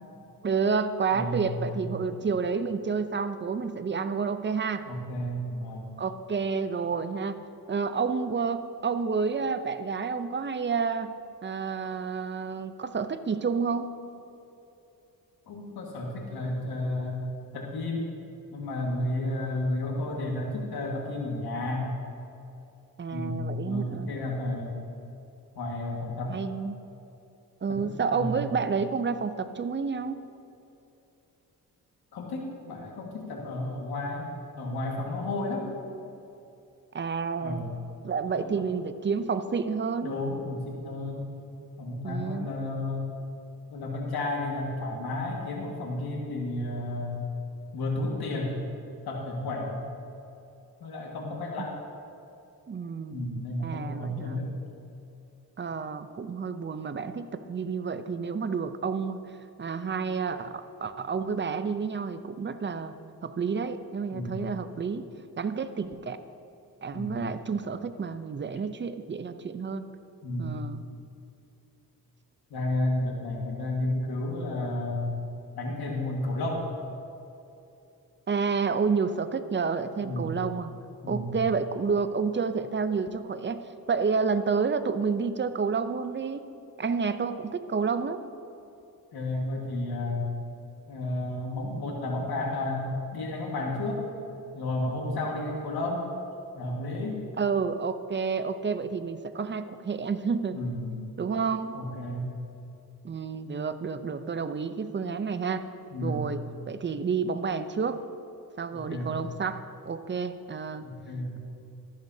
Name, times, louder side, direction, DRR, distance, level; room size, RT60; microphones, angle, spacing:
voice 1, 0.4-4.9 6.0-7.4 7.7-14.0 23.0-24.1 26.3-26.8 27.6-30.2 36.9-37.7 38.0-40.1 42.0-42.5 52.7-53.2 53.6-54.4 55.6-59.2 59.6-63.0 63.2-65.0 65.4-66.2 66.8-69.8 70.4-70.8 78.3-80.7 81.1-83.6 83.9-86.5 86.8-88.2 97.4-100.6 101.2-101.8 103.0-105.6 106.0-108.0 108.6-110.9, right 5 dB, 30° right, 11 dB, 0.6 m, -30 dB
voice 2, 1.1-1.9 4.9-6.0 15.5-17.2 17.5-18.1 18.5-21.9 23.1-24.9 25.6-26.4 27.7-28.4 32.1-34.3 34.6-35.7 37.4-37.7 38.3-38.7 40.0-41.3 41.8-43.0 43.7-47.2 47.7-48.6 49.1-49.8 50.8-51.7 53.1-54.6 64.1-64.5 66.9-67.3 70.2-70.6 72.5-75.1 75.6-76.7 80.0-80.4 81.0-81.4 89.1-90.3 90.9-94.1 94.5-96.2 96.6-97.3 100.5-101.1 101.7-102.3 105.9-106.2 108.7-109.1 110.8-111.4, left 1 dB, 85° left, -1 dB, 1.8 m, -32 dB
13.5 x 10.5 x 2.8 m, 2.8 s
cardioid pair, 75°, 37 cm